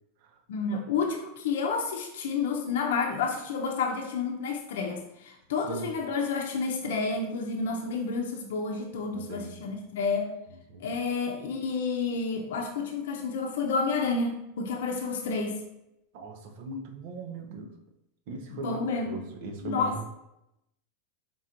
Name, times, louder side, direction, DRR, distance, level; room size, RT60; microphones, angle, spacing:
voice 1, 0.5-10.3 10.8-15.6 18.5-19.1 19.6-20.0, left 4 dB, 80° left, 1 dB, 0.6 m, -30 dB
voice 2, 9.1-9.6 10.7-11.0 16.1-17.7 18.3-18.8 19.1-20.0, right 3 dB, 65° right, 4 dB, 0.6 m, -39 dB
4.3 x 3.8 x 2.5 m, 0.86 s
supercardioid pair, 135°, 0 cm